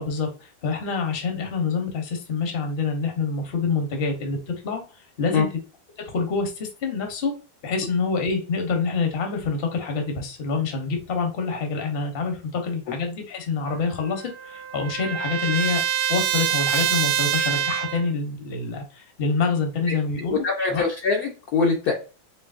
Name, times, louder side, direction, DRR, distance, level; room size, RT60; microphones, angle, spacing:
voice 1, 0.0-5.5 6.1-7.3 7.6-15.8 16.1-20.8, left 4 dB, 40° left, 4 dB, 0.9 m, -26 dB
Trumpet, 13.7-18.1, right 9 dB, 75° right, 1.0 m, -25 dB
voice 2, 20.3-21.9, left 4 dB, 65° left, 0 dB, 1.0 m, -23 dB
4.5 x 3.2 x 2.5 m, 0.34 s
omnidirectional pair, 2.1 m